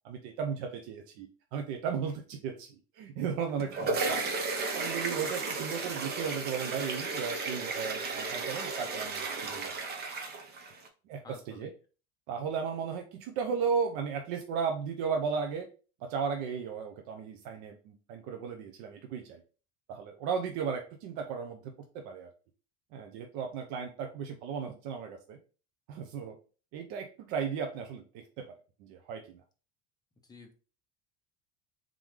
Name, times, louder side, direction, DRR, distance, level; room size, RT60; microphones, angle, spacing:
voice 1, 0.0-4.3 4.7-9.7 11.1-11.7 12.3-15.7 16.0-19.4 19.9-22.3 22.9-25.4 25.9-26.4 26.7-29.3, right 6 dB, 75° right, 4 dB, 0.7 m, -35 dB
sound 1, 3.4-10.9, right 3 dB, 30° right, 0.7 m, -34 dB
voice 2, 11.2-11.7 30.3-30.5, left 3 dB, 10° left, 2 dB, 0.7 m, -50 dB
3.7 x 3.7 x 3.1 m, 0.36 s
cardioid pair, 160°, 31 cm